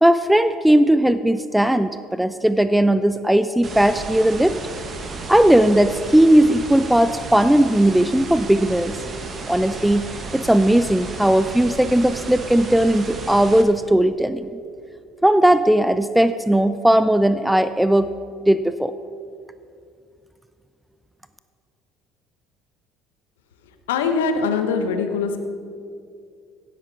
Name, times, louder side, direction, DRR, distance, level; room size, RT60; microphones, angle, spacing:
voice 1, 0.0-4.6 5.3-9.0 9.5-10.1 10.3-14.6 15.2-18.1 18.5-18.9, right 1 dB, 5° right, 12 dB, 0.4 m, -17 dB
sound 1, 3.6-13.6, right 3 dB, 35° right, 1.4 m, -33 dB
voice 2, 23.9-25.4, left 5 dB, 75° left, 7 dB, 0.9 m, -22 dB
16.5 x 7.6 x 4.7 m, 2.3 s
figure-of-eight pair, 60°, 0 cm